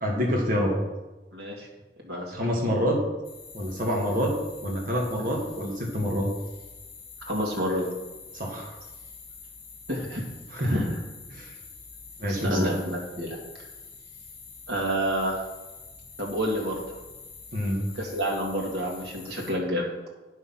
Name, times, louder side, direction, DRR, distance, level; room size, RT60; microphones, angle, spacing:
voice 1, 0.0-0.8 2.3-3.0 3.5-4.3 4.6-6.3 8.3-8.7 10.5-10.9 11.3-11.5 12.2-12.8 17.5-17.9, equal, 45° right, -1 dB, 1.9 m, -26 dB
voice 2, 1.3-1.7 2.0-2.4 7.2-7.9 9.9-10.3 10.6-10.9 12.3-13.7 14.7-15.4 16.2-16.8 17.9-19.8, equal, 65° right, -2 dB, 2.5 m, -29 dB
sound 1, 3.2-19.5, left 5 dB, 55° left, 2.8 m, -46 dB
9.7 x 6.5 x 5.8 m, 1.1 s
head